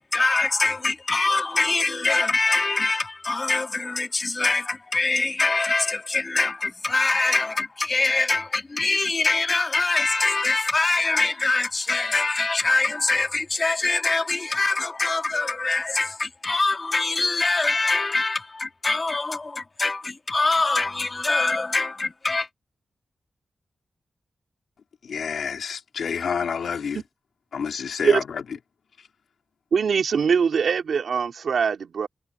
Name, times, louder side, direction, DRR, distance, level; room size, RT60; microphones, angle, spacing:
voice 1, 0.0-22.5, left 3 dB, 25° left, 2.1 m, -24 dB
voice 2, 25.1-27.0 27.5-28.2, left 6 dB, 80° left, 2.9 m, -28 dB
voice 3, 29.7-32.1, right 6 dB, 70° right, 3.0 m, -22 dB
wide cardioid pair, 180°, 0 cm